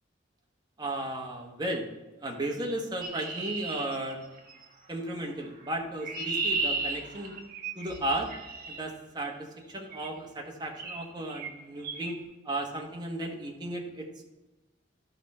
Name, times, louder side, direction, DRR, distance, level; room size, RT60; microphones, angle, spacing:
voice 1, 0.8-1.9 2.2-4.2 4.9-7.4 7.7-8.3 8.7-12.2 12.4-14.2, right 1 dB, 25° right, 0 dB, 1.3 m, -34 dB
Chirp tweet, 3.0-4.6 5.7-8.8 9.9-10.2 10.8-11.0 11.3-11.5 11.8-12.1, right 3 dB, 50° right, 1.3 m, -34 dB
13.5 x 5.0 x 4.4 m, 1.1 s
head